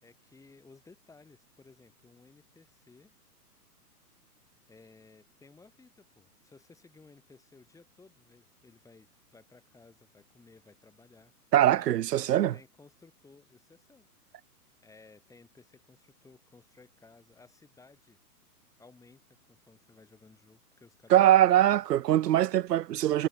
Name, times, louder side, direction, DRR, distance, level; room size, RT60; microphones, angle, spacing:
voice 1, 0.0-3.1 4.7-11.3 11.8-12.1 12.5-14.1 14.8-18.2 18.8-21.8, left 3 dB, 5° left, 3.5 m, -58 dB
voice 2, 11.5-12.5 21.1-23.3, right 12 dB, 85° right, 0.6 m, -22 dB
hypercardioid pair, 130°, 47 cm